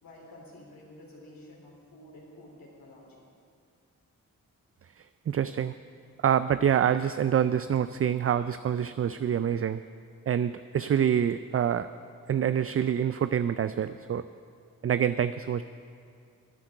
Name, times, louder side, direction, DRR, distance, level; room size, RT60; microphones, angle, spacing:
voice 1, 0.0-3.3, left 1 dB, 80° left, -3 dB, 3.6 m, -50 dB
voice 2, 5.3-5.7 6.2-9.8 10.3-11.9 12.3-14.2 14.8-15.6, right 9 dB, 40° right, 13 dB, 0.4 m, -26 dB
11.5 x 9.4 x 7.7 m, 2.3 s
cardioid pair, 40°, 35 cm